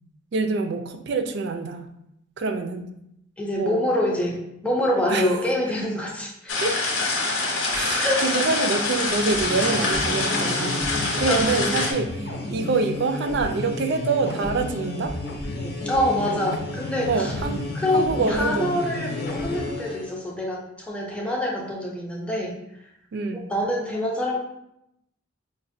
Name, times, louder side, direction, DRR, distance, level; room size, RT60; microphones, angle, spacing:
voice 1, 0.3-1.9 2.4-2.9 3.5-3.8 5.1-5.3 6.6-6.8 7.7-15.1 17.1-17.6 17.9-18.7 23.1-23.5, right 4 dB, 55° right, 7 dB, 0.3 m, -26 dB
voice 2, 3.4-4.4 4.6-6.5 8.0-8.2 10.9-11.8 15.9-17.3 17.7-22.5 23.3-24.4, left 1 dB, 5° left, -2 dB, 0.5 m, -26 dB
sound 1, 6.5-11.9, left 3 dB, 85° left, 0.7 m, -25 dB
sound 2, 9.1-20.1, left 2 dB, 50° left, 0.6 m, -31 dB
4.9 x 2.1 x 2.6 m, 0.79 s
head